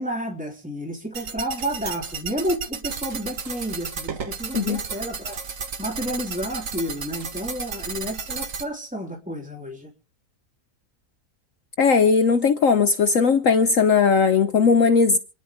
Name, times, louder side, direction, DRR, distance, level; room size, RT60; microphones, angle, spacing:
voice 1, 0.0-5.4 5.8-9.9, equal, 5° right, 3.5 m, -31 dB
sound 1, 1.1-8.6, right 5 dB, 55° right, 1.6 m, -33 dB
voice 2, 11.8-15.2, left 5 dB, 60° left, 1.2 m, -18 dB
28.0 x 10.5 x 3.6 m
omnidirectional pair, 1.7 m